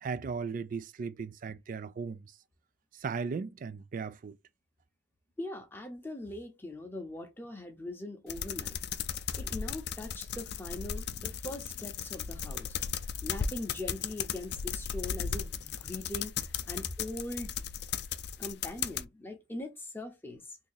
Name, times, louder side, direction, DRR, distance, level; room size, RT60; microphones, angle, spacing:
voice 1, 0.0-2.2 3.0-4.3, right 5 dB, 50° right, 0.3 m, -36 dB
voice 2, 5.4-8.8 9.4-12.8 13.2-17.5 18.4-20.6, left 1 dB, 10° left, 0.7 m, -41 dB
sound 1, 8.3-19.0, left 8 dB, 65° left, 0.4 m, -36 dB
2.8 x 2.7 x 3.8 m
head